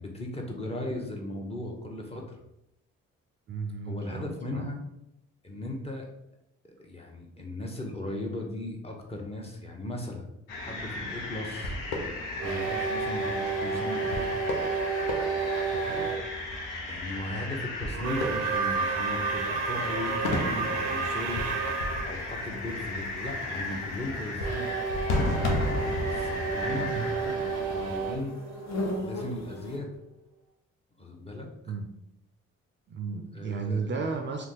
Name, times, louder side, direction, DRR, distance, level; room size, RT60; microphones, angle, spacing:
voice 1, 0.0-2.4 3.8-4.8 5.4-6.1 6.6-10.3 10.6-11.8 12.4-14.4 16.9-21.4 22.0-24.8 26.0-28.4 29.0-29.9 31.0-31.7 33.3-33.9, left 1 dB, 20° left, 0 dB, 0.8 m, -37 dB
voice 2, 3.5-4.7 15.7-16.2 26.8-27.1 31.7-32.0 32.9-34.5, right 4 dB, 35° right, 4 dB, 0.4 m, -34 dB
sound 1, 10.5-28.2, left 2 dB, 80° left, 0.6 m, -34 dB
sound 2, 12.4-16.2 17.9-22.1 24.4-29.2, right 5 dB, 90° right, 0.5 m, -31 dB
sound 3, 21.3-29.8, left 1 dB, 55° left, 0.8 m, -41 dB
2.4 x 2.2 x 3.7 m, 0.82 s
hypercardioid pair, 50°, 32 cm